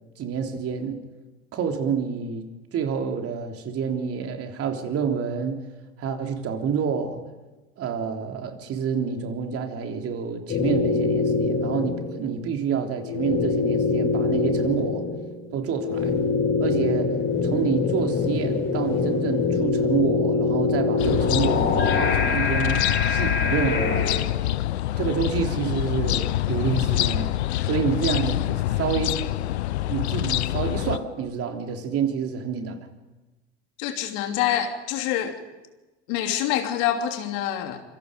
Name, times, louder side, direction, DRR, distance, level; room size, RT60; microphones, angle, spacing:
voice 1, 0.2-1.0 1.5-2.4 2.7-5.6 6.0-7.2 7.8-15.0 15.5-16.1 16.6-17.2 17.4-22.8 23.1-24.0 25.0-27.3 27.6-29.2 29.9-32.8, right 7 dB, 45° right, 3 dB, 3.5 m, -28 dB
sound 1, 10.5-12.3 12.8-24.2, left 4 dB, 40° left, 6.0 m, -24 dB
sound 2, 21.0-31.0, left 14 dB, 80° left, 0.8 m, -25 dB
voice 2, 33.8-35.4 36.1-37.8, left 10 dB, 60° left, 5 dB, 2.9 m, -26 dB
26.5 x 25.0 x 5.3 m, 1.1 s
hypercardioid pair, 85°, 32 cm